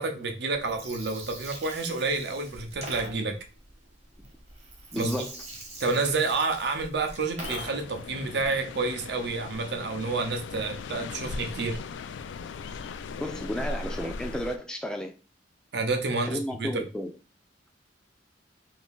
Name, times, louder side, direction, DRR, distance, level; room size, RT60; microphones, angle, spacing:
voice 1, 0.0-3.4 5.0-5.2 5.8-11.8 15.7-16.8, right 3 dB, 60° right, 0.6 m, -29 dB
Gurgling, 0.5-8.0, right 2 dB, 35° right, 0.9 m, -43 dB
voice 2, 4.9-5.3 13.2-15.1 16.2-17.1, equal, 5° left, 0.3 m, -32 dB
sound 1, 7.4-14.6, left 4 dB, 80° left, 0.3 m, -38 dB
2.7 x 2.7 x 3.6 m
head